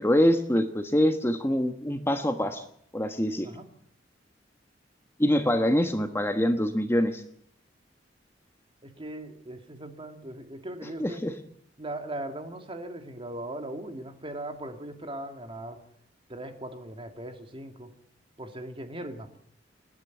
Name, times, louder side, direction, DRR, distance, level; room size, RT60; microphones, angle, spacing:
voice 1, 0.0-2.6 2.9-3.5 5.2-7.2 11.0-11.3, equal, 15° left, 7 dB, 1.3 m, -24 dB
voice 2, 8.8-11.2 11.8-15.8 16.3-17.9 18.4-19.4, right 1 dB, 30° right, 6 dB, 2.7 m, -39 dB
28.5 x 10.5 x 9.3 m, 0.67 s
head